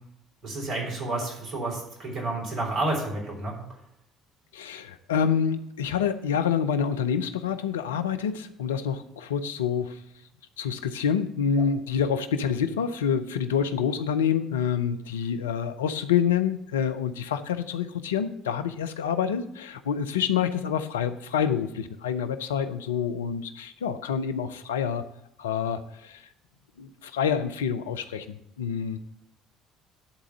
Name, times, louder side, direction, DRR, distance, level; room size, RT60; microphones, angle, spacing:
voice 1, 0.4-3.5, right 2 dB, 50° right, -1 dB, 3.5 m, -30 dB
voice 2, 4.5-10.0 10.6-25.0 25.4-26.3 26.8-29.0, left 7 dB, 85° left, 9 dB, 0.5 m, -27 dB
11.0 x 3.7 x 6.7 m, 0.78 s
hypercardioid pair, 55°, 0 cm